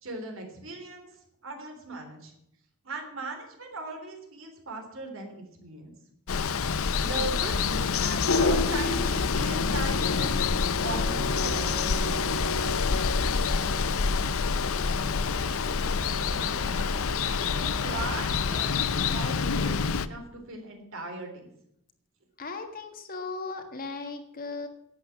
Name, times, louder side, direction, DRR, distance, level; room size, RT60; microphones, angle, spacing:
voice 1, 0.0-1.1 1.4-2.3 2.8-5.9 6.4-11.8 16.1-21.5, right 2 dB, 60° right, 3 dB, 3.5 m, -39 dB
Water, 6.3-20.1, left 5 dB, 70° left, 0.6 m, -27 dB
sound 1, 8.3-17.3, left 2 dB, 90° left, 2.3 m, -33 dB
voice 2, 22.4-24.7, left 3 dB, 40° left, 5 dB, 1.8 m, -37 dB
11.5 x 8.6 x 8.8 m, 0.77 s
head